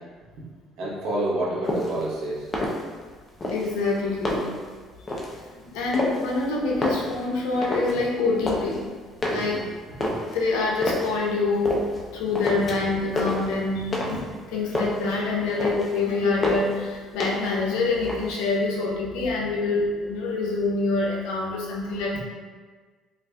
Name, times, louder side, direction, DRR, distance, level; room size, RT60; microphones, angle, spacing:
voice 1, 0.8-2.5 9.3-9.6, right 1 dB, 75° right, -6 dB, 1.1 m, -28 dB
sound 1, 1.6-2.0 2.4-3.1 3.4-4.7 5.1-5.4 5.9-6.4 6.7-8.0 8.3-8.8 9.2-11.2 11.7-12.1 12.4-12.9 13.2-14.3 14.6-15.1 15.4-16.0 16.4-16.8 17.2-17.6 17.9-18.6, left 1 dB, 30° left, 0.7 m, -29 dB
voice 2, 3.5-4.5 5.6-8.8 9.3-9.6 10.0-11.8 12.1-14.2 14.5-22.2, left 3 dB, 85° left, -2 dB, 0.7 m, -26 dB
4.7 x 2.6 x 2.3 m, 1.5 s
supercardioid pair, 90°, 0 cm